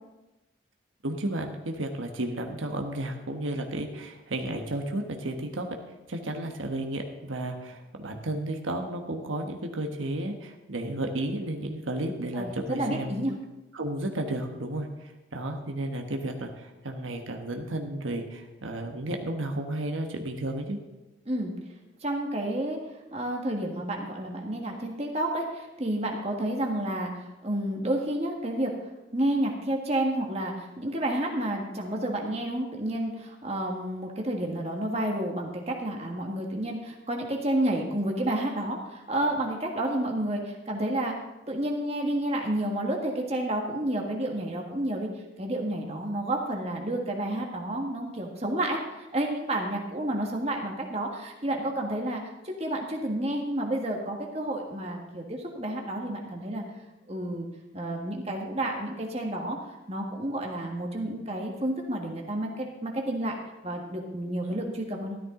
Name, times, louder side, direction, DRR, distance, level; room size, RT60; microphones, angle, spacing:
voice 1, 1.0-5.7 6.1-13.2 13.7-20.8, right 1 dB, 85° right, 3 dB, 1.3 m, -33 dB
voice 2, 12.3-13.3 21.2-21.5 22.0-22.8 23.1-28.7 29.1-41.1 41.5-45.1 45.4-56.6 57.1-57.5 57.7-59.6 59.9-63.3 63.6-65.2, right 1 dB, 30° right, 1 dB, 1.6 m, -30 dB
13.5 x 12.5 x 3.8 m, 1.0 s
head